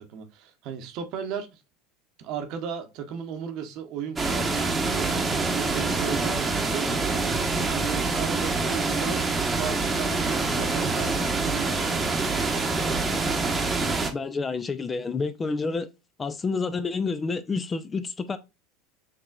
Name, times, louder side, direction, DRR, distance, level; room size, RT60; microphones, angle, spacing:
voice 1, 0.0-1.5 2.2-4.5 4.9-12.5, right 7 dB, 55° right, 0.9 m, -36 dB
sound 1, 4.1-14.1, right 3 dB, 20° right, 1.0 m, -26 dB
voice 2, 14.1-15.9 16.2-18.4, left 4 dB, 25° left, 0.5 m, -29 dB
6.6 x 2.9 x 2.3 m
hypercardioid pair, 80°, 0 cm